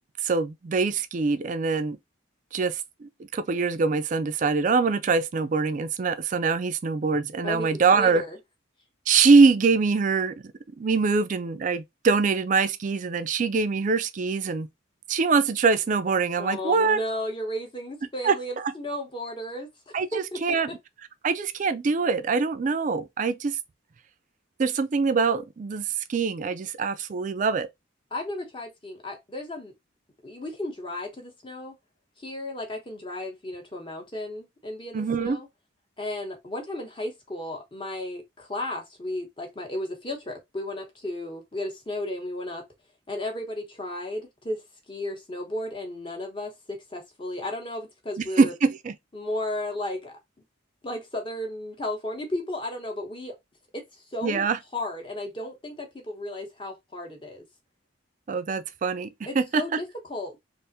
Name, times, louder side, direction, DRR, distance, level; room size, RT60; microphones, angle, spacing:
voice 1, 0.2-2.0 2.5-8.2 9.1-10.3 10.8-14.7 15.1-17.0 18.2-18.3 19.9-20.1 20.4-20.7 21.2-23.6 24.6-27.7 34.9-35.4 48.2-48.9 54.2-54.6 58.3-59.1 59.4-59.6, right 4 dB, 40° right, 0.3 m, -23 dB
voice 2, 7.4-8.4 16.4-20.8 28.1-29.7 30.2-31.7 32.2-35.5 36.0-42.6 43.1-44.6 44.9-48.5 49.1-50.1 50.8-53.4 53.7-54.5 54.7-57.4 59.2-60.4, left 1 dB, 25° left, 0.9 m, -34 dB
3.4 x 2.5 x 2.7 m
head